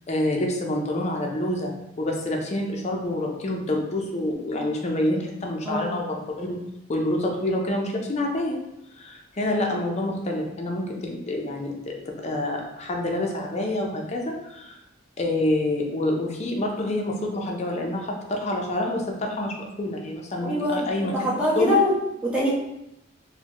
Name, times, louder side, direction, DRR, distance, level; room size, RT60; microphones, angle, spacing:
voice 1, 0.1-1.7 2.0-6.6 6.9-8.6 9.0-14.8 15.2-21.3 21.6-21.8, left 1 dB, 35° left, 1 dB, 0.5 m, -27 dB
voice 2, 20.4-22.0 22.2-22.5, left 1 dB, 5° right, -8 dB, 1.0 m, -24 dB
4.0 x 2.1 x 3.0 m, 0.86 s
head